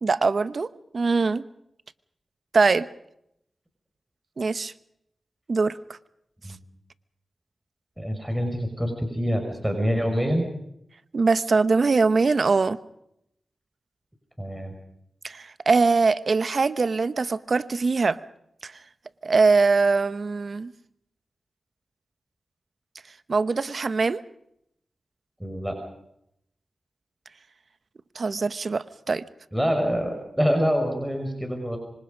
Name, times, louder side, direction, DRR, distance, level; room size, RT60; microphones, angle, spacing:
voice 1, 0.0-1.4 2.5-2.9 4.4-4.7 5.5-5.8 11.1-12.8 15.2-18.2 18.6-18.7 19.2-20.7 23.3-24.2 28.1-29.2, right 4 dB, 60° right, 14 dB, 1.0 m, -22 dB
voice 2, 8.0-10.5 14.4-14.7 25.4-25.7 29.5-31.8, equal, 5° right, 4 dB, 5.6 m, -26 dB
25.5 x 25.5 x 5.3 m, 0.77 s
cardioid pair, 55°, 0 cm